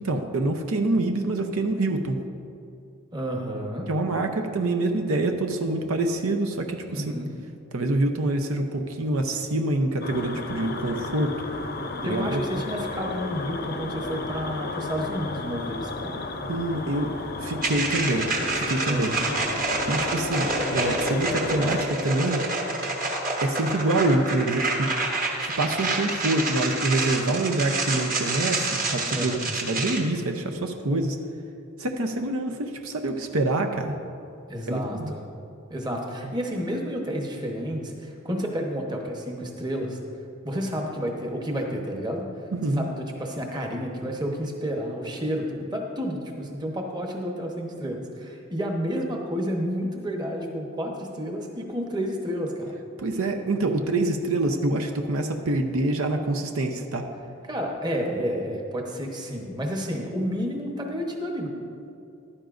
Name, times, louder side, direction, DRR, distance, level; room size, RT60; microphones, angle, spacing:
voice 1, 0.0-2.2 3.9-7.0 7.7-11.3 12.0-12.4 16.5-17.1 17.4-18.3 18.6-19.1 19.9-22.5 23.4-24.9 25.4-31.2 31.8-33.9 34.7-35.1 42.6-42.9 53.0-57.1, right 2 dB, 70° right, 4 dB, 0.7 m, -26 dB
voice 2, 3.1-3.9 6.9-7.3 12.0-16.2 18.9-19.3 29.1-29.5 34.5-35.2 35.7-40.0 40.4-42.3 42.8-52.8 57.5-61.5, equal, 20° right, 1 dB, 1.0 m, -30 dB
sound 1, 10.0-21.9, left 2 dB, 45° left, 0.7 m, -33 dB
Synthetic friction, 17.6-30.0, right 3 dB, 40° right, 1.2 m, -28 dB
14.5 x 11.5 x 2.6 m, 2.7 s
head